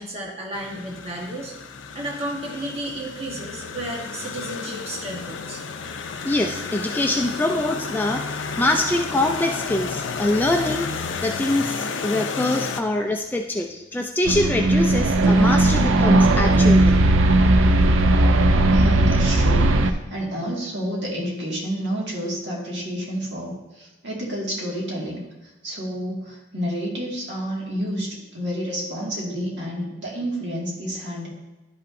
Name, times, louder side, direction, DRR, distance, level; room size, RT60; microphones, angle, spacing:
voice 1, 0.0-1.5 1.9-5.6, right 1 dB, 30° right, -2 dB, 1.2 m, -32 dB
sound 1, 0.5-12.8, left 5 dB, 70° left, 0.5 m, -32 dB
voice 2, 6.2-8.2 8.6-17.0, left 1 dB, 10° left, 3 dB, 0.3 m, -24 dB
sound 2, 14.2-19.9, right 2 dB, 80° right, 0.5 m, -17 dB
voice 3, 18.6-25.2 25.6-31.3, equal, 60° right, -3 dB, 2.0 m, -30 dB
11.0 x 5.6 x 2.6 m, 1.0 s
head